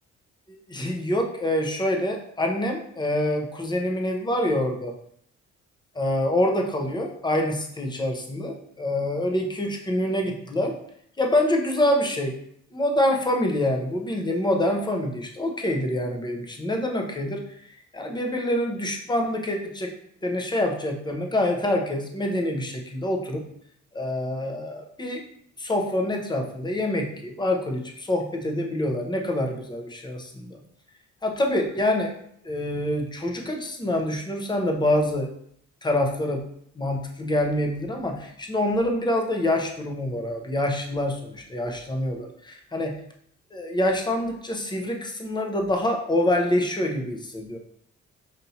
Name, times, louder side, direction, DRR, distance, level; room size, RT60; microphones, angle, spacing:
voice 1, 0.5-4.9 6.0-10.8 11.2-12.3 12.7-17.4 17.9-19.9 20.2-23.4 23.9-25.2 25.6-30.6 31.2-32.1 32.4-35.3 35.8-36.4 36.8-42.9 43.5-47.6, left 1 dB, 15° left, 2 dB, 0.7 m, -26 dB
5.6 x 2.6 x 2.8 m, 0.68 s
cardioid pair, 90°, 30 cm